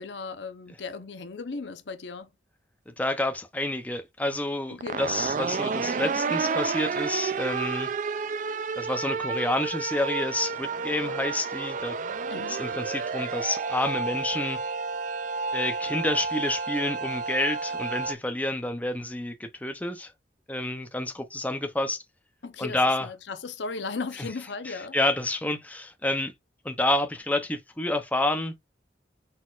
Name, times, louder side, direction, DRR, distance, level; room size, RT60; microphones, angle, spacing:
voice 1, 0.0-2.3 4.7-5.0 12.3-12.6 22.4-25.0, left 4 dB, 90° left, 0.7 m, -36 dB
voice 2, 2.9-7.9 8.8-12.0 12.5-14.6 15.5-20.1 20.5-22.0 22.6-23.1 24.2-24.3 24.6-26.3 26.6-28.5, left 1 dB, 10° left, 0.6 m, -29 dB
sound 1, 4.8-18.1, right 4 dB, 45° right, 0.3 m, -30 dB
4.1 x 4.1 x 2.4 m
head